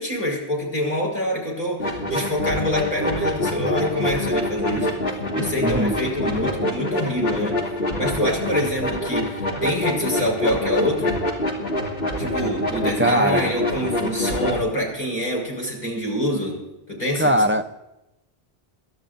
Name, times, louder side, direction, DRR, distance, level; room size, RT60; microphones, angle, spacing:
voice 1, 0.0-5.0 5.3-7.6 8.0-11.2 12.2-16.6 16.9-17.4, left 1 dB, 40° left, -2 dB, 5.4 m, -26 dB
sound 1, 1.8-14.6, left 1 dB, 70° left, 2.7 m, -26 dB
voice 2, 5.6-5.9 13.0-13.5 17.2-17.6, equal, 15° right, 6 dB, 0.5 m, -20 dB
27.0 x 12.5 x 2.6 m, 0.94 s
omnidirectional pair, 1.1 m